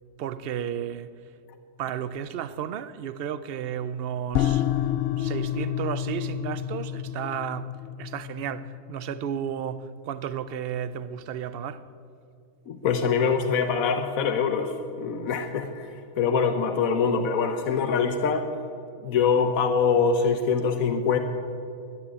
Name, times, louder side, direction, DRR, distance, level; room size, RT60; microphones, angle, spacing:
voice 1, 0.2-1.1 1.8-4.7 5.2-11.9, right 9 dB, 55° right, 0.7 m, -33 dB
sound 1, 4.3-9.6, left 11 dB, 65° left, 0.7 m, -29 dB
voice 2, 12.7-18.5 19.0-21.2, left 5 dB, 85° left, 1.3 m, -24 dB
12.5 x 10.5 x 9.8 m
omnidirectional pair, 1.4 m